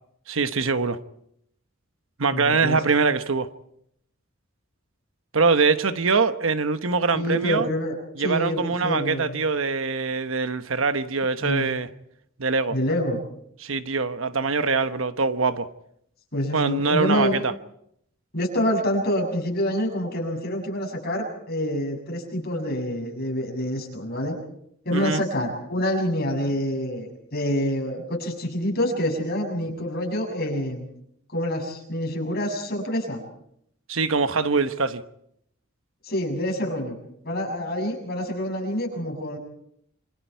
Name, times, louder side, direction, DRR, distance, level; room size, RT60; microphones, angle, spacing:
voice 1, 0.3-1.0 2.2-3.5 5.3-7.7 8.2-11.9 12.4-12.8 13.6-15.7 16.5-17.5 24.9-25.2 33.9-35.0, right 4 dB, 70° right, 1.1 m, -23 dB
voice 2, 2.3-2.8 7.1-9.4 11.4-11.7 12.7-13.2 16.3-17.4 18.3-24.4 24.9-30.8 31.3-33.2 36.0-37.0 37.2-39.4, equal, 50° left, 7.1 m, -27 dB
27.5 x 26.0 x 4.6 m
head